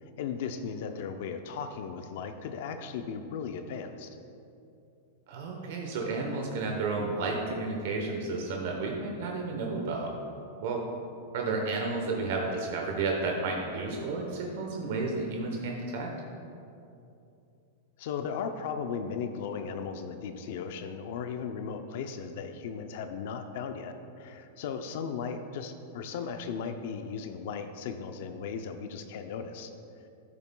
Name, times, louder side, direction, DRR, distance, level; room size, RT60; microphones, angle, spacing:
voice 1, 0.0-4.2 18.0-29.7, left 6 dB, 55° left, 7 dB, 0.5 m, -36 dB
voice 2, 5.3-10.1 10.6-10.9 11.3-16.1, right 3 dB, 55° right, 0 dB, 0.9 m, -32 dB
12.5 x 6.9 x 2.3 m, 2.7 s
supercardioid pair, 160°, 0 cm